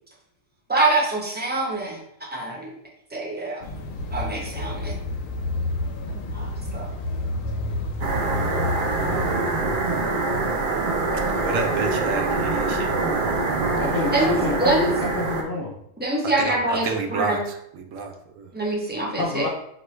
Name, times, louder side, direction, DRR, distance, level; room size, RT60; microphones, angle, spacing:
voice 1, 0.7-2.8 3.1-3.6 4.1-4.9 6.1-6.9 14.1-14.9 16.0-17.4 18.5-19.5, right 2 dB, 10° right, -2 dB, 0.6 m, -25 dB
sound 1, 3.6-9.4, left 2 dB, 80° left, 1.0 m, -29 dB
sound 2, 8.0-15.4, right 3 dB, 50° right, 0.7 m, -24 dB
voice 2, 11.3-13.4 16.4-18.5, right 4 dB, 75° right, 4 dB, 1.0 m, -30 dB
voice 3, 13.8-15.8 19.2-19.5, left 3 dB, 55° left, 0 dB, 0.7 m, -28 dB
5.9 x 2.3 x 3.1 m, 0.74 s
omnidirectional pair, 1.4 m